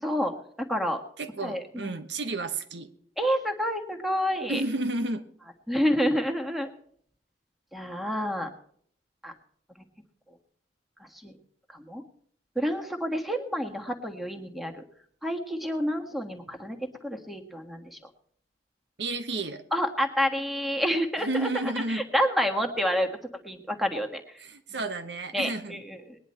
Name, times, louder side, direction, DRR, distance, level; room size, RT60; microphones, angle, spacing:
voice 1, 0.0-0.3 0.7-1.0 1.4-1.9 3.2-4.6 5.7-6.7 7.7-8.5 9.2-9.3 11.2-11.3 11.7-12.0 12.5-14.8 15.2-16.8 17.0-18.0 19.7-21.5 21.9-23.1 23.4-24.2 25.3-26.2, equal, ahead, 3 dB, 1.5 m, -28 dB
voice 2, 1.2-2.9 4.5-5.2 19.0-19.6 21.2-22.0 24.4-25.8, right 2 dB, 70° right, 9 dB, 1.1 m, -31 dB
20.5 x 10.0 x 4.4 m, 0.62 s
head